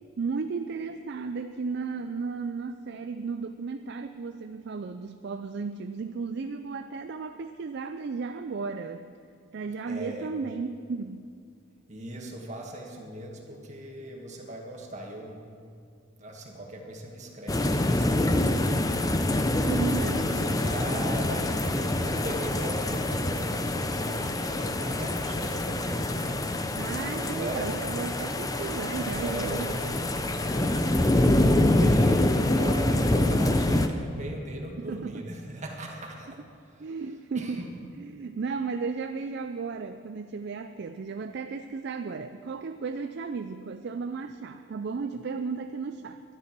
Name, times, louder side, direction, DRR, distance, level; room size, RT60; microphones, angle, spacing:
voice 1, 0.2-9.1 9.5-11.3 19.7-20.7 26.7-29.7 34.8-35.3 36.8-37.6 38.0-46.2, right 4 dB, 50° right, 8 dB, 0.4 m, -34 dB
voice 2, 9.8-10.3 11.9-15.5 16.2-19.2 20.0-26.4 27.2-27.7 29.2-30.0 30.4-36.4 36.6-36.9 37.4-37.7, right 1 dB, 35° right, 0 dB, 1.8 m, -39 dB
sound 1, 17.5-33.9, left 1 dB, 15° left, 0.5 m, -25 dB
12.0 x 11.5 x 6.0 m, 2.3 s
head